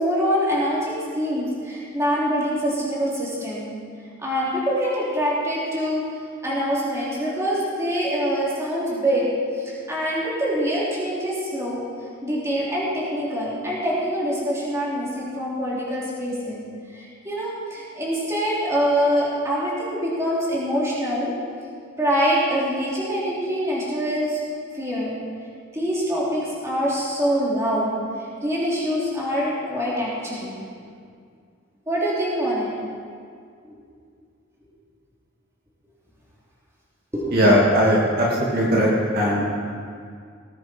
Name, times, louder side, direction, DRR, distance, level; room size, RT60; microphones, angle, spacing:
voice 1, 0.0-3.7 4.2-6.0 6.4-9.2 9.6-11.8 12.2-16.6 16.9-21.3 22.0-24.4 24.7-25.1 25.7-27.9 28.4-30.6 31.9-32.7 37.1-37.4, equal, 15° right, -7 dB, 3.4 m, -24 dB
voice 2, 37.3-38.9 39.1-39.5, equal, 50° right, -5 dB, 2.6 m, -18 dB
19.0 x 10.0 x 4.5 m, 2.2 s
head